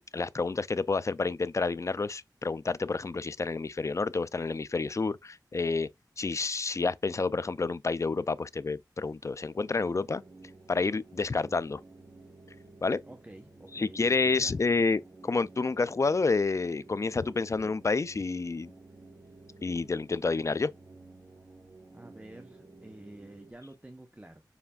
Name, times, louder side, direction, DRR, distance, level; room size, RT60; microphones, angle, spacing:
voice 1, 0.0-5.9 6.2-10.2 10.7-11.8 12.8-13.0 13.7-18.7 19.6-20.7, left 4 dB, 40° left, 0.3 m, -29 dB
sound 1, 9.6-23.5, right 2 dB, 55° right, 1.6 m, -53 dB
voice 2, 13.0-14.6 21.9-24.4, right 1 dB, 20° right, 0.8 m, -49 dB
7.0 x 3.2 x 2.3 m
wide cardioid pair, 65°, 8 cm